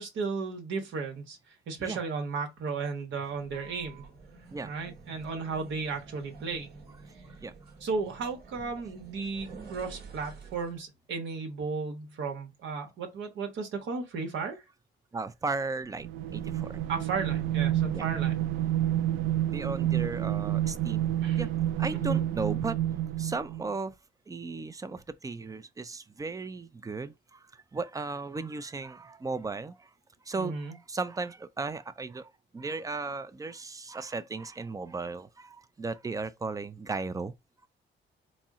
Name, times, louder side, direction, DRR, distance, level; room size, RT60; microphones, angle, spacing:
voice 1, 0.0-4.0 4.6-6.7 7.8-14.6 16.9-18.3 21.2-21.4 21.9-22.2 30.3-30.8, right 4 dB, 70° right, 1.0 m, -34 dB
sound 1, 3.3-10.8, right 4 dB, 55° right, 1.2 m, -49 dB
voice 2, 15.1-16.8 17.9-18.0 19.5-21.0 21.4-21.5 21.8-22.8 23.2-23.9 24.3-27.4 27.7-29.9 30.3-37.3, right 3 dB, 15° right, 0.4 m, -36 dB
sound 2, 16.0-23.7, right 12 dB, 85° right, 0.4 m, -29 dB
4.2 x 2.0 x 3.6 m
cardioid pair, 90°, 20 cm